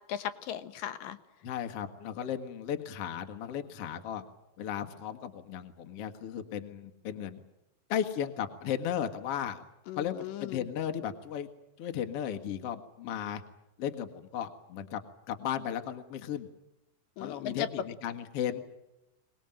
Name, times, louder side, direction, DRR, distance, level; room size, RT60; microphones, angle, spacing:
voice 1, 0.1-1.2 9.9-10.6 17.2-17.7, left 11 dB, 75° left, 11 dB, 2.7 m, -37 dB
voice 2, 1.4-4.2 4.6-7.4 7.9-9.6 10.0-11.5 11.8-13.4 13.8-15.0 15.3-16.5 17.2-18.6, left 9 dB, 50° left, 6 dB, 2.1 m, -35 dB
24.0 x 20.0 x 9.0 m, 0.92 s
omnidirectional pair, 4.1 m